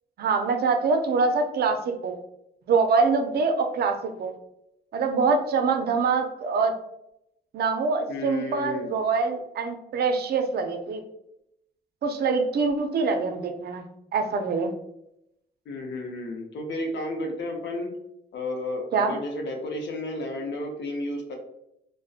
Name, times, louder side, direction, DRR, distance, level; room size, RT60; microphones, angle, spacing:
voice 1, 0.2-2.2 2.7-4.3 4.9-6.7 7.5-11.0 12.0-13.8 14.1-14.7 18.9-19.1, right 4 dB, 55° right, 5 dB, 0.4 m, -24 dB
voice 2, 8.1-8.9 15.7-17.9 18.3-21.4, left 1 dB, 65° left, 2 dB, 0.7 m, -32 dB
2.6 x 2.1 x 2.4 m, 0.81 s
cardioid pair, 90°, 20 cm